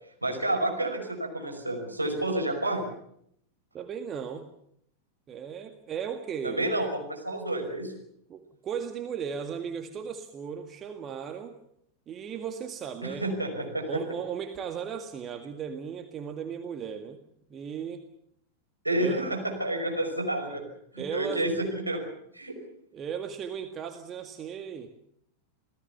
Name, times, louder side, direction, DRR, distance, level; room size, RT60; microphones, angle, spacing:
voice 1, 0.2-2.8 6.4-7.9 13.0-14.0 18.8-20.6 20.9-22.0 22.3-22.6, right 1 dB, 85° right, 3 dB, 5.5 m, -29 dB
voice 2, 3.7-4.5 5.3-6.6 8.3-11.6 12.1-13.3 13.8-17.2 17.5-18.0 19.0-19.2 21.0-21.5 22.9-24.9, right 7 dB, 25° right, 6 dB, 1.9 m, -36 dB
28.0 x 18.0 x 7.1 m, 0.70 s
figure-of-eight pair, 90°, 0 cm